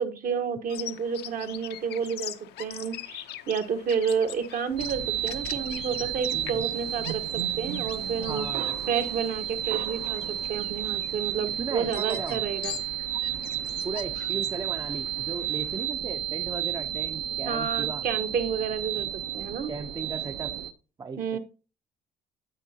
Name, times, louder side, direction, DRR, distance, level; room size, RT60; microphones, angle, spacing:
voice 1, 0.0-8.5 8.9-12.8 17.4-19.7 21.2-21.4, right 6 dB, 55° right, 1.1 m, -30 dB
Bird vocalization bird call bird song, 0.7-15.9, left 12 dB, 75° left, 0.7 m, -43 dB
sound 1, 4.8-20.7, right 11 dB, 75° right, 0.7 m, -32 dB
voice 2, 8.3-8.8 11.6-12.4 13.8-18.0 19.7-20.6 21.0-21.4, right 4 dB, 25° right, 0.5 m, -36 dB
9.9 x 7.9 x 2.7 m
cardioid pair, 110°, 17 cm